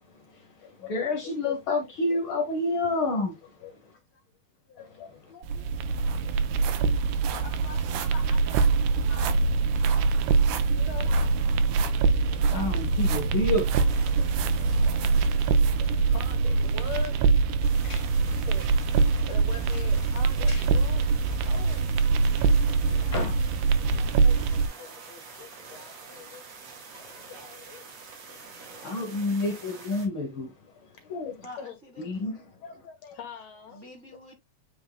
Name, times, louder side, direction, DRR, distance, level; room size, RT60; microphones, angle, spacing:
voice 1, 0.0-3.8 4.8-5.3 6.1-6.5 11.0-11.1 11.9-15.4 15.8-16.1 17.8-18.4 20.4-20.7 22.7-22.8 23.0-23.6 25.6-25.7 27.0-27.3 28.3-31.4 32.0-32.5, left 2 dB, 75° left, 1.1 m, -32 dB
voice 2, 4.7-6.9 7.4-9.3 10.7-11.1 13.3-13.4 14.7-15.0 16.0-17.2 18.5-18.7 19.2-21.8 23.8-27.9 31.4-31.7 32.6-33.8, left 6 dB, 55° left, 2.5 m, -44 dB
sound 1, 5.2-5.3 5.5-16.4 16.9-17.0 17.6-17.7, right 9 dB, 70° right, 2.3 m, -41 dB
sound 2, 5.4-24.7, right 4 dB, 90° right, 1.6 m, -24 dB
sound 3, 13.6-30.1, right 5 dB, 50° right, 2.9 m, -46 dB
voice 3, 22.2-23.5 31.4-32.1 33.7-34.4, equal, 35° right, 1.2 m, -47 dB
8.8 x 5.0 x 2.2 m
omnidirectional pair, 4.0 m